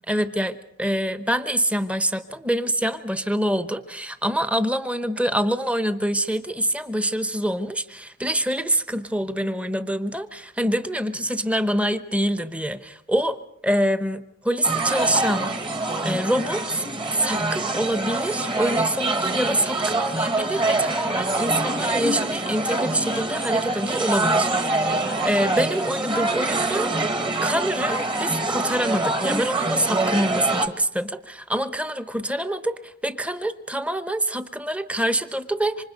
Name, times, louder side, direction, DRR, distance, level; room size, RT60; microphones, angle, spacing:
voice 1, 0.1-13.4 13.6-15.5 16.0-16.9 17.1-26.9 27.3-35.8, equal, 5° right, 11 dB, 1.0 m, -25 dB
sound 1, 14.6-30.7, right 2 dB, 25° right, 1.6 m, -25 dB
27.5 x 25.5 x 5.3 m, 0.71 s
head